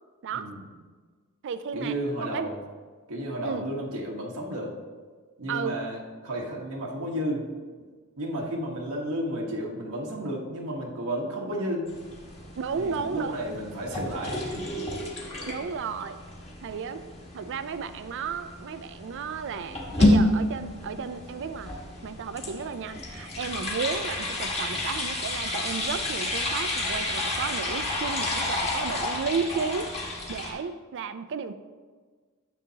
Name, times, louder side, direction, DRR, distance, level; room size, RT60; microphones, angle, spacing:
voice 1, 0.3-0.7 1.7-2.6 3.1-4.8 5.4-7.4 8.2-11.9 12.8-14.9, equal, 90° right, -2 dB, 1.3 m, -32 dB
voice 2, 1.4-1.9 2.2-2.5 3.4-3.7 5.5-5.8 12.6-13.4 15.5-16.2 16.6-17.0 17.3-21.8 22.0-30.0 30.3-31.5, right 5 dB, 60° right, 11 dB, 0.4 m, -33 dB
sound 1, 11.9-30.5, left 1 dB, 30° left, 1.6 m, -30 dB
10.5 x 7.2 x 2.8 m, 1.5 s
head